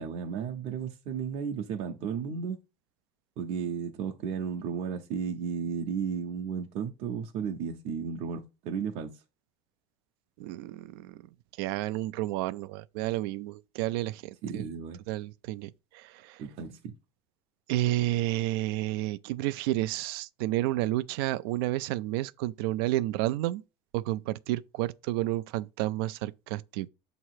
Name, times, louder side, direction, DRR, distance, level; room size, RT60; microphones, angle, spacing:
voice 1, 0.0-2.6 3.4-9.1 14.4-15.0 16.4-16.9, right 6 dB, 55° right, 0.8 m, -34 dB
voice 2, 10.4-11.2 11.6-14.6 15.1-16.4 17.7-23.6 23.9-26.9, right 16 dB, 80° right, 0.4 m, -31 dB
7.3 x 3.0 x 4.6 m
supercardioid pair, 130°, 12 cm